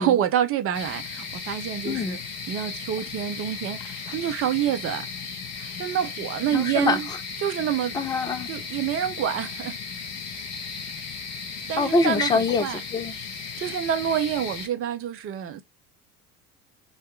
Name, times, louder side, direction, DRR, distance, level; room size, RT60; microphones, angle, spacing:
voice 1, 0.0-2.2 2.5-5.1 5.6-7.1 7.4-8.0 8.5-9.8 11.7-12.8 13.6-15.6, right 10 dB, 30° right, 0.6 m, -27 dB
sound 1, 0.7-14.7, left 5 dB, 35° left, 0.9 m, -36 dB
voice 2, 1.8-2.2 6.5-7.2 7.9-8.5 11.8-13.2, left 4 dB, 10° left, 0.4 m, -25 dB
3.8 x 2.1 x 3.1 m
figure-of-eight pair, 65°, 45 cm